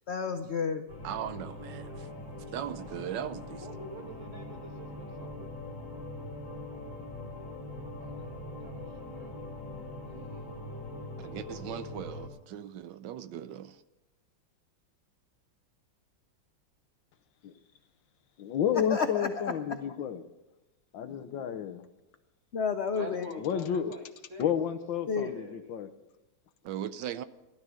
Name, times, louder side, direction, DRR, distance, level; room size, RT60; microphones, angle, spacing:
voice 1, 0.1-0.9 18.7-19.8 22.5-23.3 25.1-25.4, left 5 dB, 60° left, 0.6 m, -31 dB
sound 1, 0.9-12.3, left 1 dB, 30° left, 3.4 m, -42 dB
voice 2, 1.0-2.1 2.5-3.7 11.2-13.8 26.6-27.2, right 10 dB, 75° right, 1.3 m, -38 dB
voice 3, 3.6-5.4 8.0-8.3 8.6-9.4 10.0-10.8 19.0-19.1 23.0-24.0 24.3-24.8 25.1-25.7, right 1 dB, 45° right, 1.6 m, -47 dB
voice 4, 18.4-20.2 20.9-21.9 23.4-23.9 24.4-25.9, left 8 dB, 80° left, 1.6 m, -31 dB
16.0 x 12.0 x 6.3 m
omnidirectional pair, 2.0 m